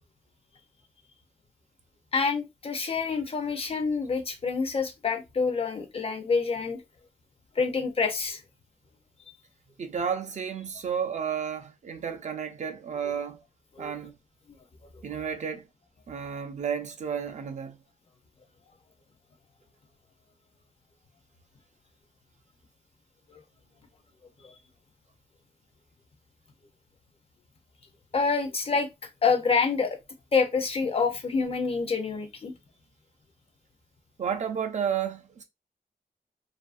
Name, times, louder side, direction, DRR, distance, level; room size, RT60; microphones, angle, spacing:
voice 1, 2.1-6.8 7.6-8.4 13.8-13.9 24.4-24.6 28.1-30.0 30.3-32.5, left 5 dB, 40° left, 0.5 m, -27 dB
voice 2, 9.8-13.4 13.8-14.1 15.0-15.6 16.1-17.8 34.2-35.4, right 7 dB, 50° right, 0.4 m, -32 dB
2.7 x 2.4 x 2.4 m
wide cardioid pair, 175°, 16 cm